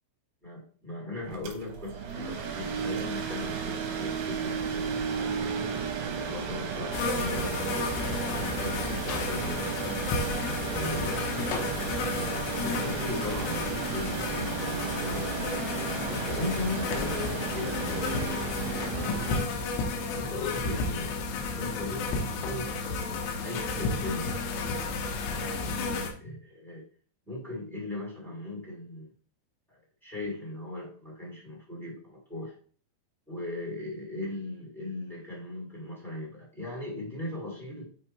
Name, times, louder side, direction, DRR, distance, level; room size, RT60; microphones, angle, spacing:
voice 1, 0.4-5.1 6.1-9.8 10.7-11.4 12.1-12.3 12.6-15.5 16.1-19.5 20.1-21.2 21.6-22.7 23.4-24.3 25.3-26.8 27.2-29.1 29.7-32.5 33.3-37.9, left 2 dB, ahead, -4 dB, 0.8 m, -38 dB
sound 1, 1.2-19.4, right 6 dB, 65° right, 2.9 m, -34 dB
sound 2, 6.9-26.1, left 3 dB, 90° left, 3.5 m, -32 dB
9.1 x 3.2 x 4.4 m, 0.44 s
omnidirectional pair, 5.4 m